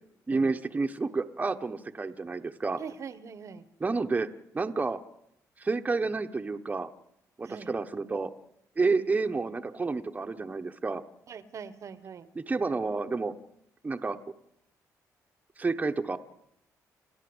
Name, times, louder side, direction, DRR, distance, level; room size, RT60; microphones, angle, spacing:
voice 1, 0.3-2.8 3.8-4.3 4.5-5.0 5.6-6.9 7.4-8.3 8.8-11.0 12.3-13.3 13.8-14.2 15.6-16.2, right 3 dB, 25° right, 6 dB, 1.1 m, -29 dB
voice 2, 2.8-3.6 7.4-7.7 10.3-10.4 11.3-12.3, right 6 dB, 50° right, 14 dB, 1.1 m, -42 dB
29.0 x 12.0 x 8.0 m, 0.78 s
cardioid pair, 95°, 6 cm